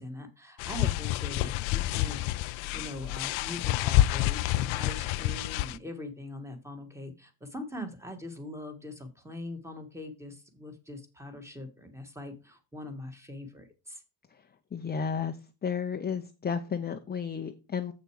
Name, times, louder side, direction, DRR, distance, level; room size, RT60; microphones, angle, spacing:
voice 1, 0.0-14.0, left 1 dB, 5° right, 6 dB, 1.6 m, -42 dB
sound 1, 0.6-5.8, left 16 dB, 90° left, 0.6 m, -28 dB
voice 2, 14.7-15.4 15.6-17.9, left 6 dB, 20° left, 6 dB, 0.6 m, -32 dB
7.7 x 6.6 x 4.7 m, 0.31 s
cardioid pair, 135°, 45 cm